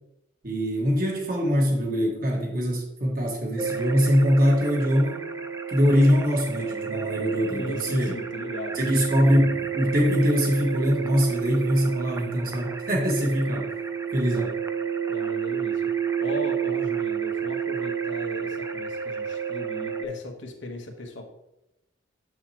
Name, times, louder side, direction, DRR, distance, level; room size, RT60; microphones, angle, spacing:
voice 1, 0.4-5.3 5.7-8.2 8.7-13.7 14.1-14.6, equal, 45° right, -1 dB, 1.6 m, -23 dB
sound 1, 3.6-20.0, right 7 dB, 15° right, 0.3 m, -30 dB
voice 2, 7.6-8.8 14.3-14.4 15.1-15.8 16.2-21.3, left 1 dB, 70° left, 3 dB, 1.2 m, -38 dB
7.3 x 6.5 x 2.9 m, 0.91 s
head